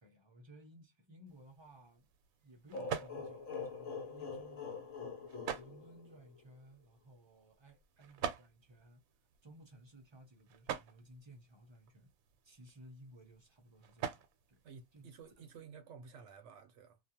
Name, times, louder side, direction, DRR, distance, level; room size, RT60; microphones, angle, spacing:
voice 1, 0.0-2.1 2.4-4.9 5.5-9.0 9.4-12.1 12.4-14.6 14.9-15.1 15.4-15.5, right 1 dB, 30° right, 0.5 m, -58 dB
sound 1, 1.3-15.6, right 8 dB, 85° right, 1.0 m, -48 dB
sound 2, 2.7-6.4, left 4 dB, 65° left, 0.9 m, -44 dB
voice 2, 14.6-17.0, right 6 dB, 65° right, 0.9 m, -53 dB
2.4 x 2.3 x 2.7 m
omnidirectional pair, 1.4 m